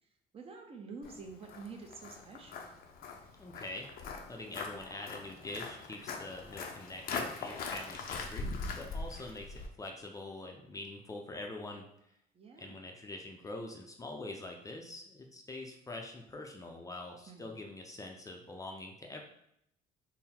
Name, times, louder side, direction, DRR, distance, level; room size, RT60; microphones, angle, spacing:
voice 1, 0.3-2.6 12.3-12.8 17.3-17.6, right 4 dB, 35° right, 3 dB, 0.6 m, -48 dB
Walk footsteps, 1.0-9.7, left 4 dB, 60° left, 0.6 m, -42 dB
voice 2, 3.4-3.9 4.3-11.9 12.6-19.2, left 2 dB, 20° left, 2 dB, 0.5 m, -44 dB
3.8 x 2.0 x 4.2 m, 0.74 s
cardioid pair, 110°, 17 cm